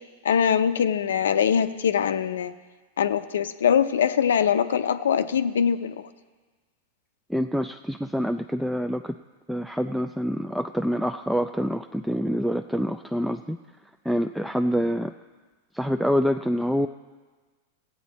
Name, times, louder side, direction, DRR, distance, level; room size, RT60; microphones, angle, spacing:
voice 1, 0.2-2.5 3.0-6.0, left 8 dB, 85° left, 11 dB, 0.5 m, -22 dB
voice 2, 7.3-9.2 9.5-13.6 14.0-15.1 15.7-16.9, equal, ahead, 6 dB, 0.3 m, -26 dB
15.5 x 8.6 x 4.1 m, 1.4 s
hypercardioid pair, 115°, 0 cm